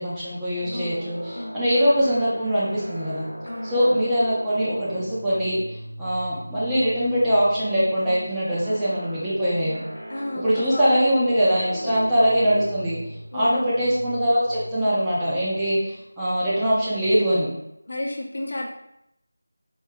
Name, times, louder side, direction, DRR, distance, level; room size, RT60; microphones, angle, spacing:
voice 1, 0.0-3.3 3.6-9.8 10.3-13.0 13.3-17.5, equal, 5° right, -11 dB, 0.5 m, -22 dB
sound 1, 0.6-17.1, equal, 85° right, 1.2 m, -39 dB
voice 2, 0.7-1.8 3.4-3.8 10.1-10.9 11.8-12.1 13.3-13.7 17.9-18.7, left 1 dB, 60° left, 0 dB, 0.6 m, -33 dB
4.5 x 2.6 x 2.3 m, 0.81 s
figure-of-eight pair, 175°, 0 cm